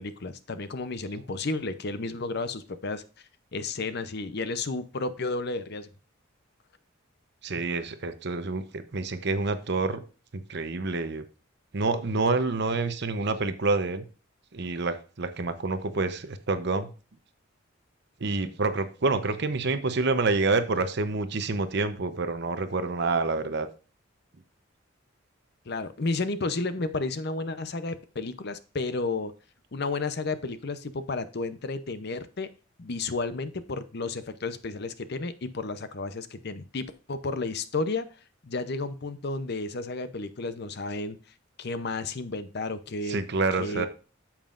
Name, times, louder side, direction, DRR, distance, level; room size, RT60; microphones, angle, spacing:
voice 1, 0.0-3.0 3.5-5.9 25.7-29.3 29.7-32.5 32.8-38.1 38.4-41.2 41.6-43.2 43.6-43.9, left 3 dB, 55° left, 12 dB, 0.7 m, -32 dB
voice 2, 7.4-10.0 10.3-11.2 11.7-14.1 14.5-16.9 18.2-23.7 43.1-43.9, right 3 dB, 55° right, 10 dB, 0.8 m, -27 dB
8.9 x 7.3 x 2.5 m, 0.35 s
head